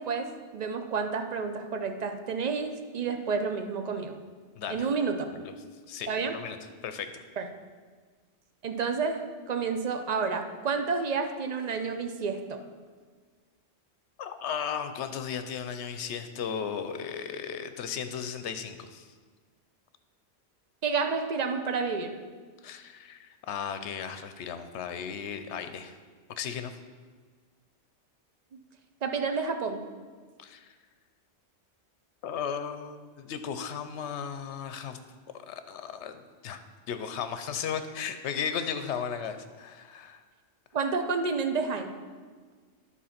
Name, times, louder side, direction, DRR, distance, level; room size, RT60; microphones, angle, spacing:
voice 1, 0.0-4.2 4.7-5.3 6.1-6.3 7.4-7.5 8.6-9.2 9.5-12.6 20.8-22.1 29.0-29.8 40.7-41.9, right 5 dB, 45° right, 6 dB, 0.6 m, -30 dB
voice 2, 4.6-4.9 5.3-5.5 5.9-6.6 6.8-7.1 14.2-19.0 22.6-25.9 26.4-26.7 30.4-30.7 32.2-35.0 35.5-36.6 36.9-40.2, left 7 dB, 75° left, 10 dB, 0.9 m, -35 dB
10.5 x 4.1 x 5.8 m, 1.5 s
omnidirectional pair, 1.2 m